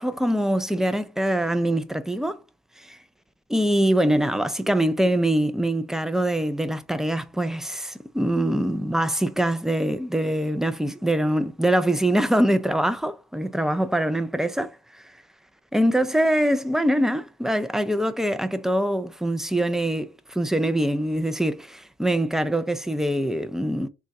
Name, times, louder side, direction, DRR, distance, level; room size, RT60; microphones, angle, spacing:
voice 1, 0.0-2.4 2.8-3.0 3.5-14.8 15.7-23.9, right 1 dB, ahead, 0.4 m, -23 dB
3.6 x 2.3 x 4.1 m
cardioid pair, 90°, 20 cm